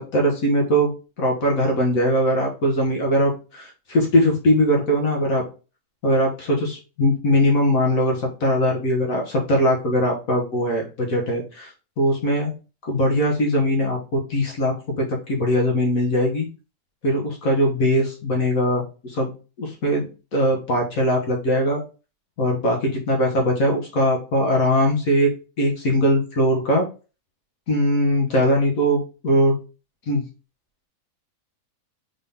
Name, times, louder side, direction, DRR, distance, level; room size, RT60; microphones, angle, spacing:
voice 1, 0.1-0.9 1.2-5.4 6.0-12.5 12.8-16.5 17.0-19.3 19.6-21.8 22.4-25.3 25.6-26.9 27.7-29.6 30.1-30.2, equal, 60° left, 0 dB, 1.6 m, -21 dB
4.0 x 3.8 x 3.4 m, 0.33 s
omnidirectional pair, 1.7 m